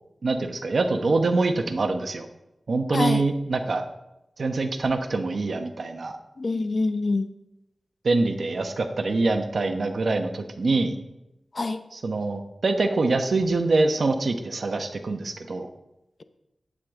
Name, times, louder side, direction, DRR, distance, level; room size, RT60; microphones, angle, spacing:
voice 1, 0.2-2.3 2.7-3.8 4.4-6.1 8.0-11.0 11.9-15.7, right 3 dB, 70° right, 6 dB, 1.0 m, -24 dB
voice 2, 2.9-3.2 6.4-7.3 11.5-11.8, left 3 dB, 55° left, 10 dB, 0.7 m, -25 dB
11.0 x 8.6 x 3.7 m, 0.90 s
cardioid pair, 60°, 0 cm